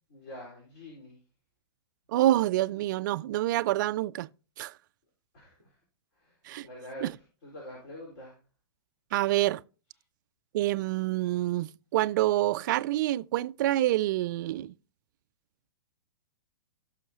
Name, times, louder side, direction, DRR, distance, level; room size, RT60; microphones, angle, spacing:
voice 1, 0.1-1.2 5.3-5.7 6.2-6.3 6.6-7.1 7.4-8.3, equal, 50° left, 4.5 m, -45 dB
voice 2, 2.1-4.3 4.6-4.7 6.5-6.7 7.0-7.1 9.1-9.6 10.5-14.7, right 15 dB, 45° right, 0.4 m, -27 dB
18.0 x 6.4 x 2.9 m
figure-of-eight pair, 110°, 14 cm